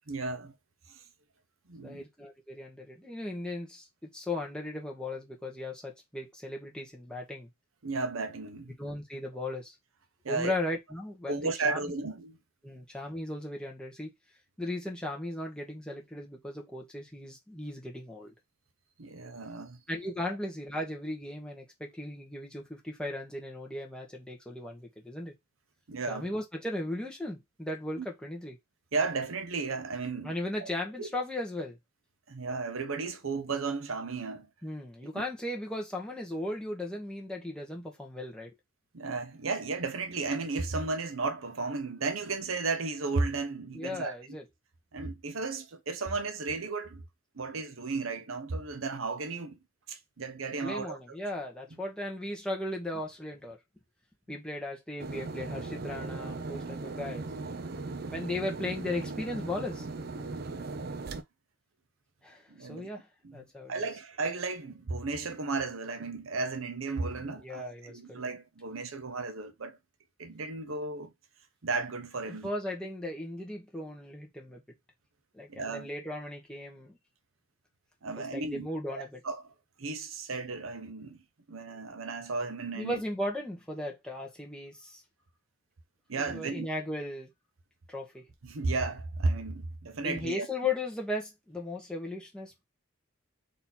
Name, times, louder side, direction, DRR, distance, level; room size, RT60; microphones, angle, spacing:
voice 1, 0.1-0.5 0.9-1.0 1.7-2.0 7.8-8.8 10.2-10.5 11.3-12.4 19.0-19.8 25.9-26.3 28.0-28.1 28.9-30.3 30.6-30.7 31.0-31.1 32.3-34.5 38.9-44.1 44.9-47.0 47.3-49.6 49.9-51.0 60.5-60.9 62.5-62.9 63.2-69.8 70.2-71.1 71.6-72.5 75.5-75.9 78.0-79.5 79.8-81.2 81.5-83.0 86.1-86.7 88.4-90.5, right 3 dB, 85° right, 0.8 m, -34 dB
voice 2, 1.8-3.9 4.1-7.5 8.8-9.7 10.3-11.8 12.6-14.1 14.6-18.3 19.9-25.3 26.1-28.6 30.2-31.8 34.6-38.5 43.7-44.4 50.6-53.6 54.3-57.3 58.1-59.9 62.2-63.1 63.3-63.7 67.2-68.2 72.3-74.6 75.3-77.0 78.3-79.2 82.7-85.0 86.2-87.3 87.9-88.2 90.0-92.6, left 1 dB, 5° left, 1.1 m, -37 dB
sound 1, 55.0-61.2, right 3 dB, 50° right, 0.5 m, -38 dB
4.1 x 2.8 x 4.2 m
head